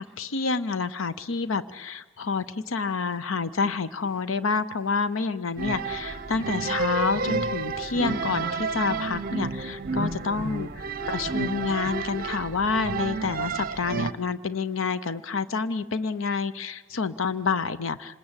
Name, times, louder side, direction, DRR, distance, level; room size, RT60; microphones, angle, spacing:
voice 1, 0.0-18.2, left 5 dB, 80° left, 14 dB, 0.7 m, -28 dB
sound 1, 5.6-14.1, right 4 dB, 45° right, 0.8 m, -30 dB
26.0 x 20.0 x 8.9 m, 1.3 s
head